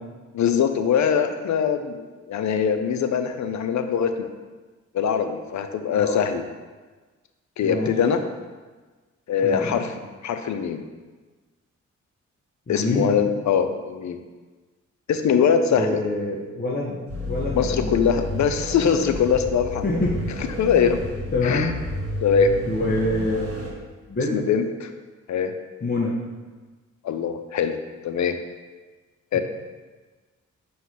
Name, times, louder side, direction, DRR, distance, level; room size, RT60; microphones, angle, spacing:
voice 1, 0.3-2.0 2.3-4.3 4.9-6.4 7.6-8.2 9.3-9.9 10.2-10.8 12.7-14.2 15.1-16.0 17.6-19.9 20.6-21.0 21.4-21.7 22.2-22.5 24.3-24.9 25.3-25.5 27.0-27.7 28.0-28.4 29.3-29.4, left 7 dB, 70° left, 8 dB, 0.6 m, -22 dB
voice 2, 7.6-7.9 9.4-9.8 12.7-13.1 15.7-17.0 17.3-18.0 19.8-20.2 21.3-21.7 22.7-23.8 24.1-24.4 25.8-26.2 29.3-29.4, left 2 dB, 30° left, -4 dB, 0.9 m, -26 dB
sound 1, 17.1-23.7, left 1 dB, 50° right, 1.5 m, -31 dB
5.7 x 3.1 x 5.6 m, 1.3 s
cardioid pair, 65°, 30 cm